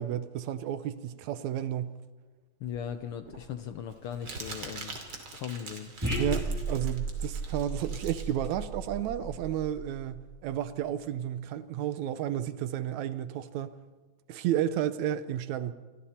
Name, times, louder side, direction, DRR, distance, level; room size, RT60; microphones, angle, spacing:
voice 1, 0.0-2.0 6.2-13.7 14.3-15.7, right 11 dB, 75° right, 2.0 m, -32 dB
voice 2, 2.6-5.0 5.3-5.9, left 8 dB, 75° left, 1.3 m, -38 dB
Crumpling crinkling, 2.7-9.7, right 3 dB, 45° right, 3.3 m, -44 dB
sound 1, 6.0-10.7, right 2 dB, 5° right, 2.5 m, -35 dB
27.0 x 23.5 x 4.4 m
omnidirectional pair, 3.5 m